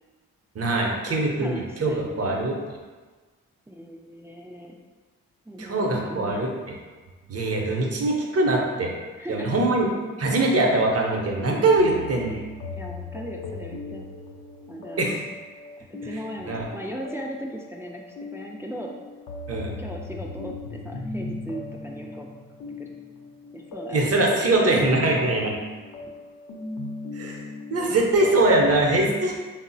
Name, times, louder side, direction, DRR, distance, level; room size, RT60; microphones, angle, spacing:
voice 1, 0.5-2.6 5.6-6.5 7.3-8.9 9.3-9.9 10.2-12.3 15.0-15.2 16.1-16.2 16.5-16.6 19.5-19.7 23.9-25.5 27.1-27.4 27.7-29.4, right 2 dB, 45° right, 0 dB, 0.7 m, -22 dB
voice 2, 1.1-2.5 3.7-4.8 5.5-6.6 9.2-9.6 11.8-12.3 12.7-14.1 14.7-15.1 15.9-18.9 19.5-22.3 22.8-22.9 23.5-24.8, right 1 dB, 10° right, 0 dB, 0.3 m, -38 dB
sound 1, 11.2-28.7, left 2 dB, 70° left, 0.6 m, -39 dB
3.5 x 2.0 x 2.6 m, 1.4 s
supercardioid pair, 40°, 35 cm